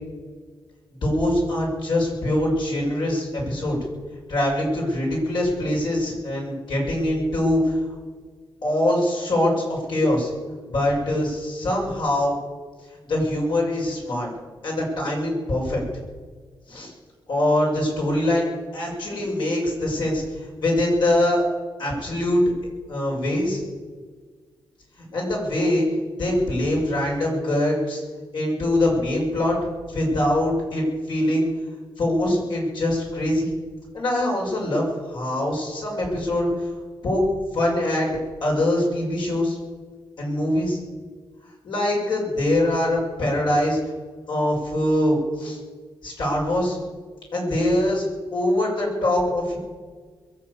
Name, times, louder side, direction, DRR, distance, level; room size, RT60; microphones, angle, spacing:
voice 1, 1.0-3.8 4.3-7.8 8.6-10.3 10.7-12.4 13.0-14.3 14.6-15.8 16.7-16.9 17.3-18.5 18.7-21.4 21.8-22.4 22.9-23.6 25.0-25.9 26.2-28.0 28.3-29.6 29.9-31.5 32.0-33.5 33.9-36.7 37.0-37.2 37.5-38.1 38.4-39.6 40.2-40.8 41.6-43.8 44.3-45.6 46.0-46.8 47.3-48.0 48.3-49.6, left 1 dB, 70° left, -2 dB, 6.8 m, -23 dB
22.0 x 7.8 x 8.5 m, 1.5 s
cardioid pair, 80°, 8 cm